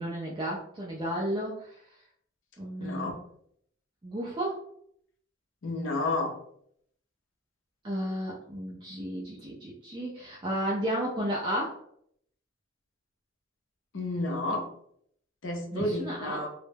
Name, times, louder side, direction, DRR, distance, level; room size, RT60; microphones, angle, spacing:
voice 1, 0.0-1.8 2.6-3.1 4.0-4.6 7.8-11.8 15.7-16.5, equal, 20° right, -4 dB, 0.3 m, -33 dB
voice 2, 2.8-3.1 5.6-6.4 13.9-14.7 15.4-16.5, left 2 dB, 75° left, 3 dB, 0.5 m, -31 dB
2.1 x 2.0 x 3.2 m, 0.68 s
head